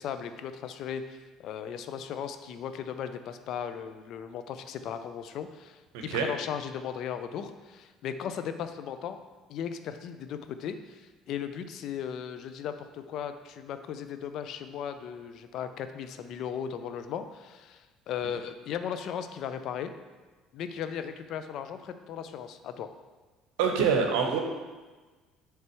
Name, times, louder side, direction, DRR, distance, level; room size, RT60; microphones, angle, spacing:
voice 1, 0.0-9.2 9.5-19.9 20.5-22.9, left 8 dB, 60° left, 9 dB, 0.4 m, -37 dB
voice 2, 5.9-6.3 23.6-24.4, right 6 dB, 75° right, 3 dB, 0.7 m, -25 dB
6.6 x 3.3 x 4.6 m, 1.3 s
hypercardioid pair, 60°, 0 cm